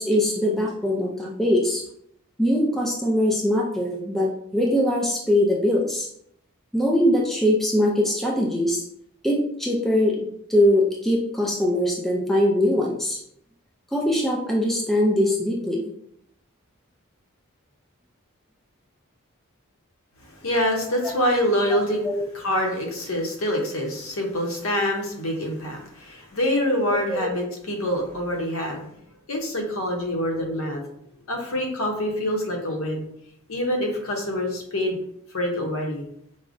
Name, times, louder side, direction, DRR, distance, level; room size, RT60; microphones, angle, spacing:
voice 1, 0.0-1.8 2.4-6.1 6.7-8.8 9.2-13.2 13.9-15.9 22.0-22.3 26.9-27.3, left 1 dB, ahead, -3 dB, 0.4 m, -22 dB
voice 2, 20.2-28.9 29.3-30.8 31.3-33.0 33.5-35.0 35.3-36.1, left 1 dB, 65° left, 1 dB, 0.8 m, -26 dB
4.8 x 2.1 x 2.5 m, 0.71 s
head